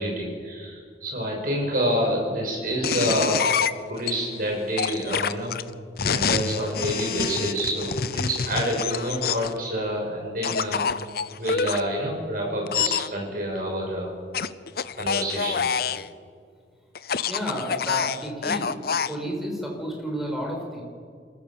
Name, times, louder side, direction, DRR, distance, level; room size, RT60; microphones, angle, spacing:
voice 1, 0.0-3.5 3.9-5.5 6.0-10.9 11.4-14.1 15.0-15.6, equal, 55° right, 0 dB, 6.3 m, -27 dB
sound 1, 2.8-4.1 4.8-9.6 10.4-11.8 12.7-13.1 14.3-16.1 17.0-19.1, left 6 dB, 60° left, 0.7 m, -26 dB
voice 2, 17.2-18.7 19.1-20.8, equal, ahead, -1 dB, 5.0 m, -31 dB
27.0 x 14.5 x 7.3 m, 2.1 s
head